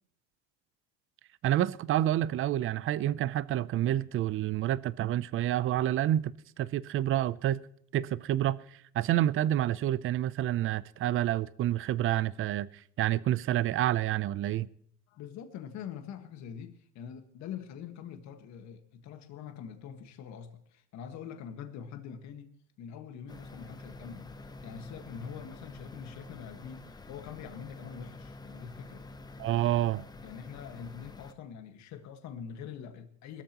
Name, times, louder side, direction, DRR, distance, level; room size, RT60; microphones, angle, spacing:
voice 1, 1.4-7.6 7.9-8.6 8.9-12.7 13.0-14.7 29.4-30.0, right 13 dB, 40° right, 0.5 m, -28 dB
voice 2, 15.1-24.3 24.6-29.0 29.3-29.6 30.2-33.4, left 8 dB, 55° left, 1.6 m, -44 dB
sound 1, 23.3-31.3, left 2 dB, 10° left, 0.7 m, -48 dB
20.5 x 13.5 x 3.0 m
cardioid pair, 125°, 33 cm